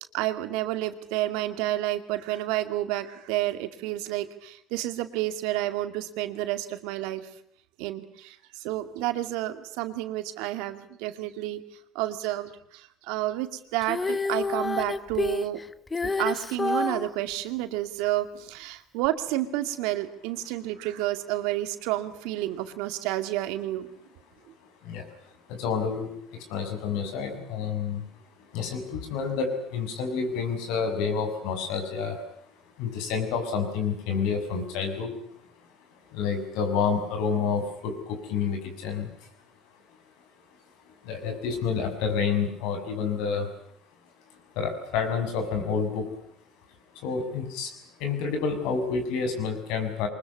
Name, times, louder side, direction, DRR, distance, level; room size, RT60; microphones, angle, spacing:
voice 1, 0.1-7.3 7.8-11.6 11.9-15.6 16.0-23.9, right 15 dB, 85° right, 9 dB, 2.3 m, -30 dB
Female singing, 13.8-17.1 19.0-19.1, left 3 dB, 20° left, 1.2 m, -28 dB
voice 2, 24.8-28.0 28.4-32.2 32.8-35.3 36.1-39.3 40.8-43.5 44.5-46.1 46.9-47.7 48.0-50.1, left 5 dB, 80° left, 6 dB, 6.7 m, -29 dB
24.0 x 21.5 x 9.6 m, 0.71 s
supercardioid pair, 100°, 0 cm